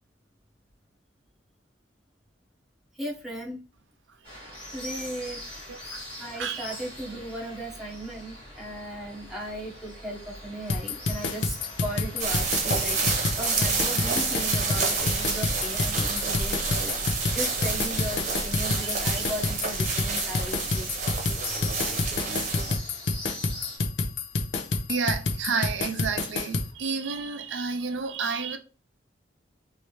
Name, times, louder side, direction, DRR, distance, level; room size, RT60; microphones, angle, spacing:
voice 1, 3.0-3.6 4.7-5.4 6.2-13.0 13.3-16.9 17.3-20.9, right 1 dB, ahead, 1.0 m, -36 dB
sound 1, 4.2-23.8, left 1 dB, 30° left, 1.8 m, -43 dB
voice 2, 5.7-6.0 6.4-6.7 24.9-28.6, right 5 dB, 90° right, 0.5 m, -30 dB
sound 2, 10.7-26.7, left 3 dB, 70° left, 0.6 m, -28 dB
sound 3, 12.2-22.8, right 4 dB, 40° right, 0.9 m, -29 dB
3.2 x 2.7 x 3.1 m
head